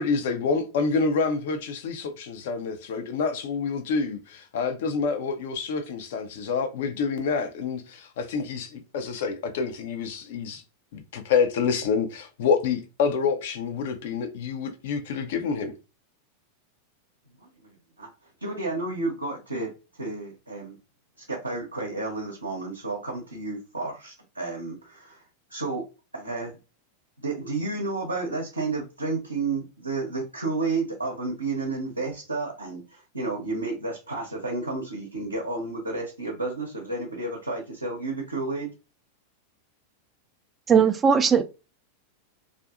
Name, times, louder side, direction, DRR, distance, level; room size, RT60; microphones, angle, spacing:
voice 1, 0.0-10.6 10.9-15.7, left 5 dB, 55° left, 0.5 m, -27 dB
voice 2, 17.4-18.1 18.4-19.7 20.0-20.8 21.2-25.2 25.5-25.8 26.1-26.6 27.2-38.7, right 3 dB, 85° right, 0.6 m, -31 dB
voice 3, 40.7-41.4, right 6 dB, 20° right, 0.3 m, -18 dB
2.6 x 2.4 x 2.3 m
figure-of-eight pair, 90°, 0 cm